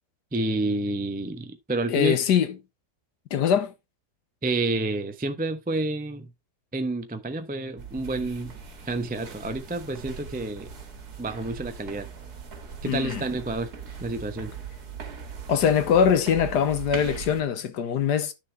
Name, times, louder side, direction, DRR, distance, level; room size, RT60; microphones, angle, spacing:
voice 1, 0.3-2.2 4.4-6.3 6.7-8.5 8.9-10.7 11.2-12.1 12.8-13.7 14.0-14.5, right 2 dB, 10° right, 0.6 m, -29 dB
voice 2, 1.9-2.5 3.3-3.7 12.8-13.2 15.5-18.3, left 8 dB, 85° left, 1.6 m, -22 dB
sound 1, 7.8-17.4, right 6 dB, 70° right, 2.3 m, -40 dB
10.0 x 6.7 x 3.3 m
omnidirectional pair, 1.7 m